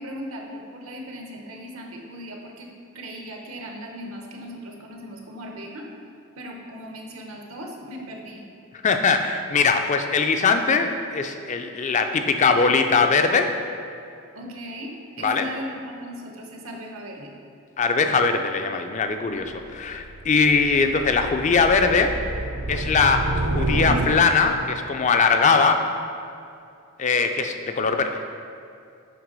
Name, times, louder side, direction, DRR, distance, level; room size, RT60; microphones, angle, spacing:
voice 1, 0.0-5.9 6.4-8.5 14.3-17.3 19.2-19.5, equal, 75° right, 1 dB, 0.9 m, -38 dB
voice 2, 8.8-13.5 15.2-15.5 17.8-22.1 22.7-25.8 27.0-28.2, left 4 dB, 35° left, 6 dB, 0.4 m, -21 dB
sound 1, 19.5-24.6, right 2 dB, 35° right, 0.5 m, -29 dB
7.9 x 3.3 x 5.2 m, 2.5 s
head